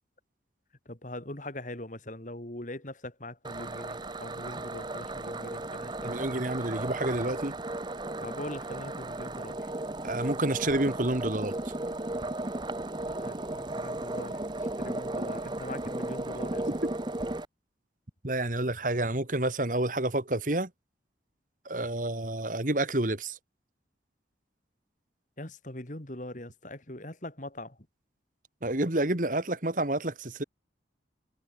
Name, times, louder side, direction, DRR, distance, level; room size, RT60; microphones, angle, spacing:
voice 1, 0.9-6.4 8.2-9.6 13.2-16.7 25.4-27.8, left 1 dB, 45° left, 2.7 m, -42 dB
sound 1, 3.4-17.5, right 2 dB, 25° right, 0.9 m, -35 dB
voice 2, 6.0-7.6 10.0-11.7 16.8-16.9 18.2-20.7 21.7-23.4 28.6-30.4, right 1 dB, 45° right, 2.0 m, -29 dB
head